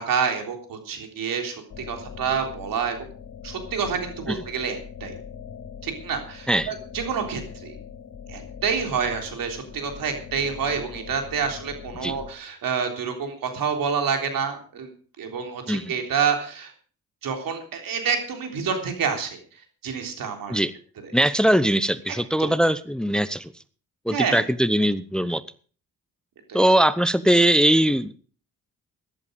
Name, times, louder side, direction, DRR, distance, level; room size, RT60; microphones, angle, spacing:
voice 1, 0.0-3.0 3.4-5.2 5.8-7.8 8.3-14.9 15.2-16.7 17.2-20.6 22.4-22.5 24.1-24.4 26.5-26.6, right 6 dB, 80° right, 4 dB, 3.6 m, -28 dB
sound 1, 1.7-12.3, left 7 dB, 70° left, 3.3 m, -41 dB
voice 2, 21.1-23.5 24.1-25.4 26.5-28.1, right 1 dB, ahead, 15 dB, 0.8 m, -21 dB
14.5 x 11.5 x 5.2 m, 0.41 s
cardioid pair, 70°, 33 cm